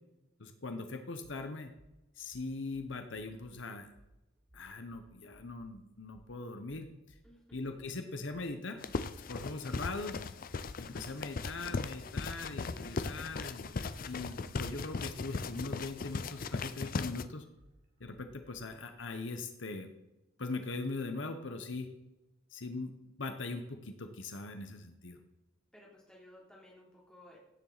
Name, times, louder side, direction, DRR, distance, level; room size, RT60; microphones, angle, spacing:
voice 1, 0.4-1.7 2.2-3.9 4.5-6.9 7.5-8.8 9.3-10.2 10.8-17.4 18.0-19.9 20.4-21.9 22.5-25.2, left 3 dB, 70° left, 6 dB, 1.0 m, -41 dB
sound 1, 1.2-1.4 1.8-1.9 2.3-3.6 3.9-4.1 4.5-5.8 6.1-6.3 6.7-7.9 8.3-12.3 12.7-18.7, right 1 dB, 40° right, 2.6 m, -62 dB
sound 2, 8.8-17.3, left 4 dB, 45° left, 0.5 m, -38 dB
voice 2, 25.7-27.4, left 1 dB, 5° left, -4 dB, 3.2 m, -57 dB
16.5 x 7.3 x 4.1 m, 0.97 s
head